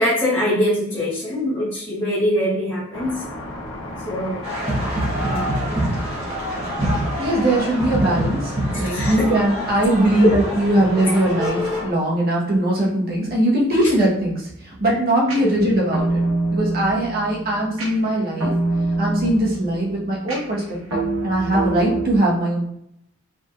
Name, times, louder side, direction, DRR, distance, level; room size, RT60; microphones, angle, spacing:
voice 1, 0.0-3.2 4.0-4.4 5.2-5.5 8.9-9.3, equal, 15° left, -10 dB, 1.3 m, -23 dB
sound 1, 2.9-11.9, left 1 dB, 80° left, 1.2 m, -34 dB
sound 2, 4.4-11.8, equal, 30° right, 1.3 m, -26 dB
voice 2, 7.2-16.2 16.5-18.5 19.0-20.6 20.9-22.6, right 1 dB, 50° right, -4 dB, 1.3 m, -20 dB
sound 3, 15.3-22.0, right 2 dB, 90° right, 1.2 m, -25 dB
5.0 x 3.4 x 2.5 m, 0.74 s
head